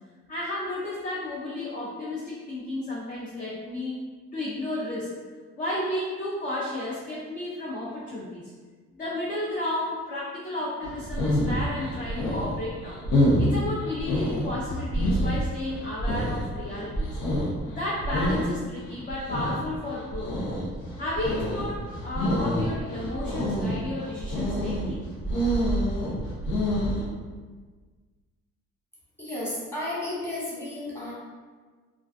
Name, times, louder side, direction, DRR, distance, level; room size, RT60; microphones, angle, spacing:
voice 1, 0.3-4.0 4.3-5.1 5.6-8.4 9.0-13.0 13.4-17.2 17.7-20.3 21.0-25.0, left 1 dB, 30° left, -6 dB, 0.5 m, -32 dB
sound 1, 10.8-27.0, equal, 80° left, 0.7 m, -27 dB
voice 2, 29.2-31.1, left 1 dB, 10° left, -8 dB, 1.1 m, -33 dB
2.4 x 2.3 x 2.4 m, 1.4 s
cardioid pair, 90°, 30 cm